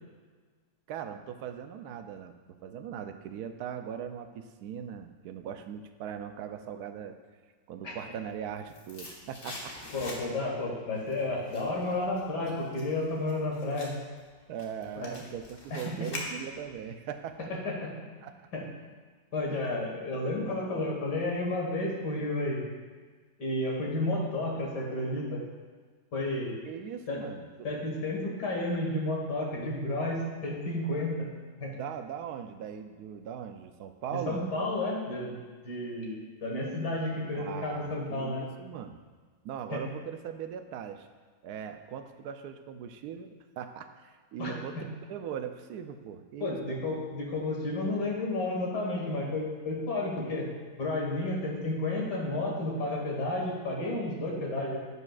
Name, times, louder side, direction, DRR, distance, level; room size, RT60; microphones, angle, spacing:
voice 1, 0.9-7.2 7.7-9.8 14.5-17.5 18.2-18.3 19.5-19.6 20.6-20.9 26.6-27.7 31.7-34.4 37.3-39.0 39.4-41.1 41.4-46.8 54.4-54.7, right 8 dB, 70° right, 8 dB, 1.0 m, -40 dB
sound 1, 8.2-10.6 10.9-16.8 17.1-17.2, left 2 dB, 50° left, 1.5 m, -44 dB
voice 2, 9.9-13.9 15.0-15.1 15.7-16.1 17.5-17.9 18.5-18.6 19.3-22.6 23.4-25.4 26.1-26.6 27.1-27.2 27.6-31.3 31.6-31.7 34.1-35.4 35.6-38.4 39.7-39.8 44.4-44.8 46.4-50.5 50.8-54.8, left 2 dB, 70° left, -2 dB, 2.3 m, -32 dB
11.0 x 8.3 x 2.4 m, 1.5 s
omnidirectional pair, 1.9 m